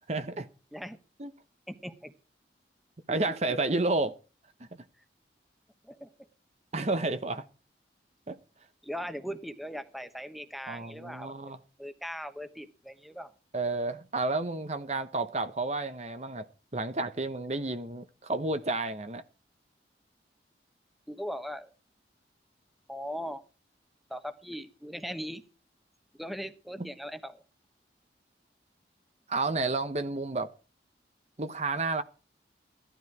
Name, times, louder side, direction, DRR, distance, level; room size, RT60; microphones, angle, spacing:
voice 1, 0.1-0.5 1.2-1.3 3.1-4.2 6.7-7.5 8.3-8.4 10.7-11.6 13.5-16.5 16.7-19.2 26.8-26.9 29.3-30.5 31.4-32.0, right 2 dB, 40° right, 0.9 m, -31 dB
voice 2, 1.7-2.1 3.3-3.4 5.8-6.1 8.8-13.3 21.1-21.7 22.9-23.4 24.1-25.4 26.2-27.4, equal, ahead, 1.1 m, -39 dB
16.0 x 12.5 x 4.7 m
head